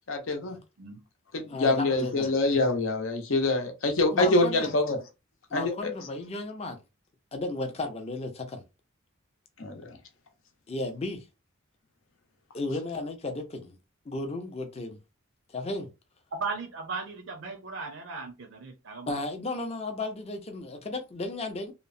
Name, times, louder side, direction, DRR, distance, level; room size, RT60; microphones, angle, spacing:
voice 1, 0.1-0.6 1.3-5.0 5.5-5.9 9.6-9.8, left 2 dB, 75° left, 0.7 m, -25 dB
voice 2, 1.5-2.3 4.1-4.7 5.5-6.8 7.3-8.6 10.7-11.2 12.5-13.8 14.1-15.0 15.5-15.9 19.1-21.7, left 2 dB, 30° left, 0.5 m, -34 dB
voice 3, 16.3-19.2, right 4 dB, 65° right, 0.6 m, -37 dB
2.9 x 2.0 x 2.5 m
head